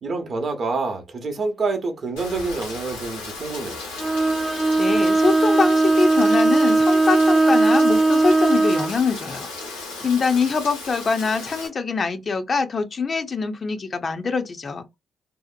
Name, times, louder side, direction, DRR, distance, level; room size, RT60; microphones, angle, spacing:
voice 1, 0.0-3.8, right 3 dB, 50° right, 0.7 m, -27 dB
Rain, 2.2-11.7, left 3 dB, 85° left, 0.9 m, -35 dB
Bowed string instrument, 4.0-8.9, right 2 dB, 20° right, 0.3 m, -18 dB
voice 2, 4.8-9.5 9.7-14.9, left 4 dB, 40° left, 0.4 m, -24 dB
2.7 x 2.0 x 2.4 m
hypercardioid pair, 45°, 0 cm